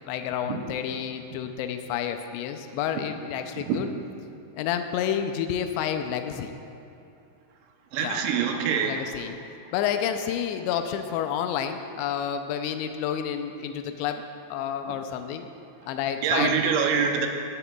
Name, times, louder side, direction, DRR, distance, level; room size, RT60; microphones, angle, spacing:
voice 1, 0.1-3.9 4.5-6.6 8.0-8.2 8.7-9.4 9.7-14.2 14.5-15.5 15.9-16.7, left 9 dB, 85° left, 6 dB, 2.5 m, -30 dB
voice 2, 7.9-9.0 16.2-17.3, right 7 dB, 80° right, 3 dB, 2.9 m, -24 dB
18.0 x 12.0 x 2.3 m, 2.7 s
omnidirectional pair, 5.6 m